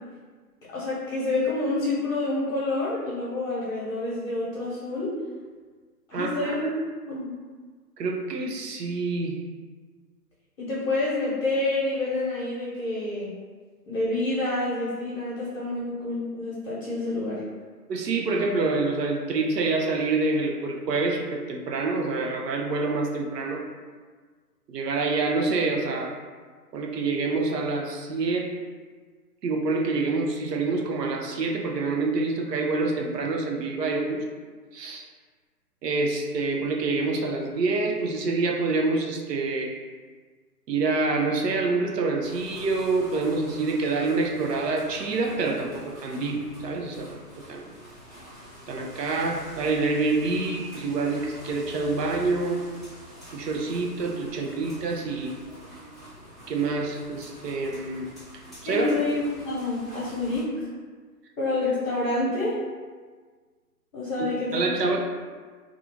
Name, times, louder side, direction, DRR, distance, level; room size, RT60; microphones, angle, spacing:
voice 1, 0.7-5.1 6.1-6.7 7.1-7.3 10.6-13.3 13.9-17.4 58.6-60.5 61.4-62.6 63.9-64.6, left 2 dB, 55° left, -8 dB, 0.9 m, -28 dB
voice 2, 6.1-6.6 8.0-9.4 17.9-23.6 24.7-26.2 26.7-28.5 29.4-34.2 34.7-35.1 35.8-39.7 40.7-47.2 47.5-47.7 48.7-52.6 53.3-55.4 56.5-58.1 58.6-59.0 64.5-65.0, right 3 dB, 80° right, 1 dB, 0.6 m, -27 dB
sound 1, 42.2-60.4, equal, ahead, 0.4 m, -46 dB
2.4 x 2.4 x 2.7 m, 1.5 s
hypercardioid pair, 175°, 48 cm